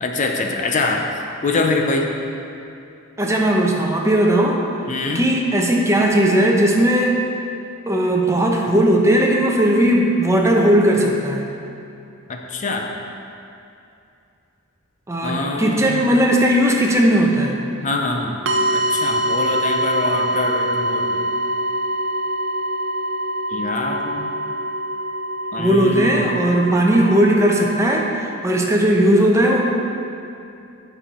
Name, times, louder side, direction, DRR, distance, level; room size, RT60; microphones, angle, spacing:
voice 1, 0.0-1.0 1.4-2.1 4.9-5.3 12.3-12.9 15.2-16.0 17.8-18.4 18.7-21.2 23.5-24.3 25.5-26.2, left 3 dB, 40° left, 2 dB, 0.6 m, -24 dB
voice 2, 3.2-4.6 5.1-7.2 7.9-11.5 15.1-17.6 25.6-29.6, right 1 dB, 15° right, 0 dB, 0.7 m, -17 dB
sound 1, 18.5-28.1, equal, 70° right, 0.6 m, -24 dB
9.7 x 5.5 x 4.2 m, 2.6 s
head